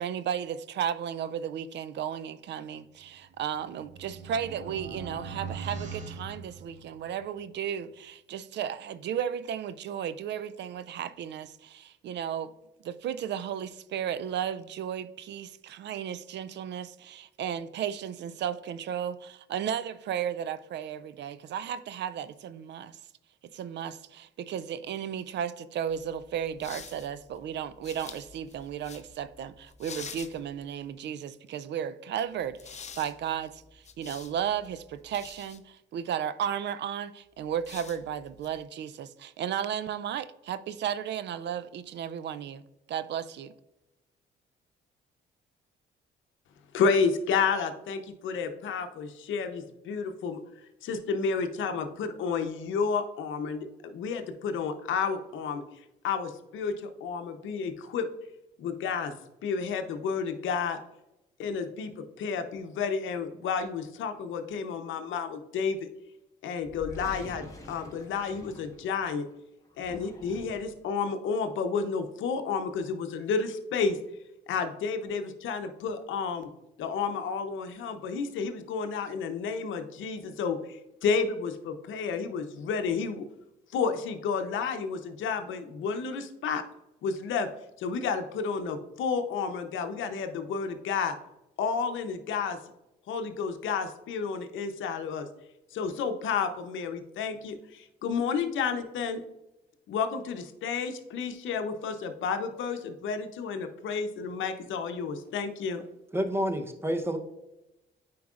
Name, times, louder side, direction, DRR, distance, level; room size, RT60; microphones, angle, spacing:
voice 1, 0.0-12.5 12.8-23.0 23.5-42.6 42.9-43.5, right 9 dB, 65° right, 0.4 m, -34 dB
sound 1, 3.2-7.2, right 5 dB, 40° right, 1.2 m, -41 dB
sound 2, 25.9-30.9 32.4-35.6 37.4-38.6, left 6 dB, 35° left, 0.6 m, -48 dB
voice 2, 46.7-50.4 50.8-55.6 56.0-58.1 58.6-59.1 59.4-60.8 61.4-61.9 62.2-65.9 66.4-69.3 69.8-74.0 74.5-76.5 76.8-83.2 83.7-86.6 87.0-87.5 87.8-91.1 91.6-92.6 93.1-95.3 95.7-99.2 99.9-105.8, left 5 dB, 75° left, 0.7 m, -31 dB
sound 3, 66.6-69.2 69.7-70.8, left 2 dB, 15° left, 1.5 m, -46 dB
voice 3, 106.1-107.2, equal, 10° right, 0.8 m, -28 dB
9.3 x 4.6 x 2.4 m
cardioid pair, 90°, 20 cm